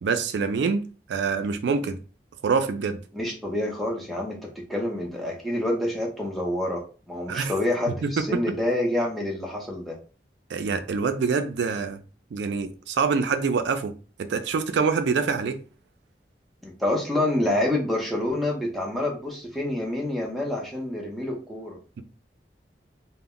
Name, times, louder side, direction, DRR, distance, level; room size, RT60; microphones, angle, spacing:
voice 1, 0.0-2.0 2.4-3.0 7.3-7.5 8.0-8.4 10.5-12.0 12.3-15.6, right 5 dB, 85° right, 0.3 m, -25 dB
voice 2, 3.1-10.0 16.6-21.8, left 1 dB, ahead, 0.6 m, -27 dB
2.1 x 2.1 x 3.6 m
head